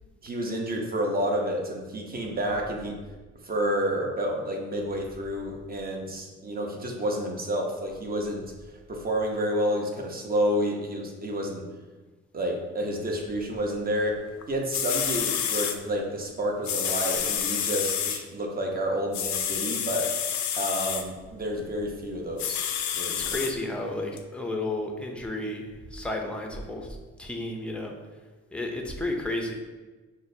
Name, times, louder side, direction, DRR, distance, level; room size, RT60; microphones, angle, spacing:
voice 1, 0.2-3.0 3.4-11.7 12.3-14.2 14.5-22.7 22.9-23.4, equal, 30° right, 1 dB, 0.8 m, -30 dB
sound 1, 14.4-14.5 14.7-15.8 16.6-18.2 19.1-21.0 22.4-23.5 24.2-24.3, left 9 dB, 70° left, 0.5 m, -28 dB
voice 2, 23.1-27.9 28.5-29.5, left 2 dB, 5° left, 2 dB, 0.5 m, -32 dB
6.0 x 2.1 x 2.6 m, 1.2 s
cardioid pair, 90°, 30 cm